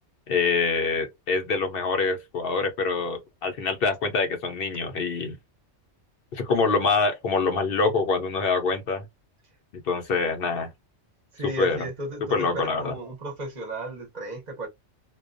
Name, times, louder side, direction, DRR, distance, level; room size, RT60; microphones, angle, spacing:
voice 1, 0.3-5.4 6.3-9.0 9.7-10.7 11.6-11.8 12.3-12.9, left 4 dB, 60° left, 0.7 m, -25 dB
voice 2, 11.3-14.7, right 1 dB, 40° right, 0.8 m, -34 dB
2.3 x 2.2 x 2.5 m
omnidirectional pair, 1.2 m